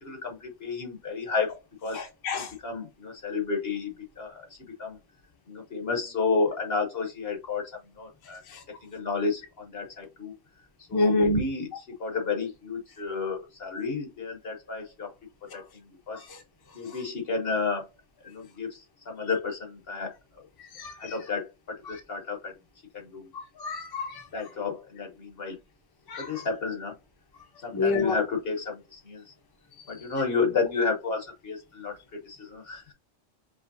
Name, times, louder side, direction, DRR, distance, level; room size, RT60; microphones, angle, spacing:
voice 1, 0.0-1.5 1.8-2.1 2.3-4.5 4.8-5.0 5.5-7.7 8.0-8.4 8.8-10.3 10.9-15.1 15.5-15.6 16.1-16.2 16.7-17.9 18.2-20.1 21.0-22.5 22.9-23.3 24.3-25.6 26.2-26.9 27.6-29.2 29.9-32.9, left 4 dB, 50° left, 1.2 m, -31 dB
voice 2, 1.9-2.5 10.9-11.4 20.8-20.9 23.3-24.2 26.1-26.4 27.7-28.2, left 2 dB, 20° left, 0.8 m, -27 dB
5.3 x 3.1 x 2.6 m
omnidirectional pair, 1.3 m